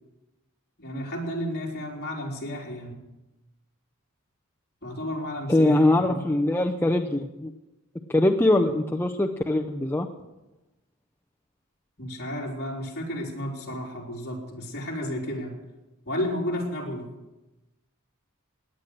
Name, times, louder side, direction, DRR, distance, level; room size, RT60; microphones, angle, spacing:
voice 1, 0.8-3.0 4.8-6.3 12.0-15.5 16.0-17.1, left 1 dB, 50° left, -2 dB, 4.2 m, -32 dB
voice 2, 5.5-7.5 8.1-10.1, left 1 dB, 10° left, 3 dB, 0.6 m, -22 dB
18.5 x 10.0 x 6.5 m, 1.0 s
head